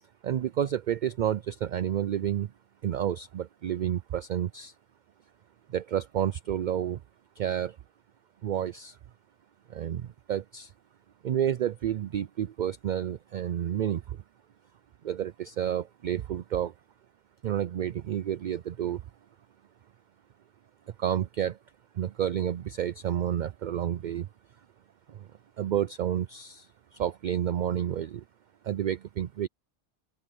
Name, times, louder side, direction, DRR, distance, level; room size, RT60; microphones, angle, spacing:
voice 1, 0.2-2.5 2.8-4.7 5.7-7.0 7.4-7.8 8.4-9.0 9.7-10.7 11.2-14.2 15.0-16.7 17.4-19.0 21.0-21.6 21.9-24.3 25.1-25.3 25.6-28.2 28.6-29.5, right 10 dB, 60° right, 0.5 m, -30 dB
open air
omnidirectional pair, 1.2 m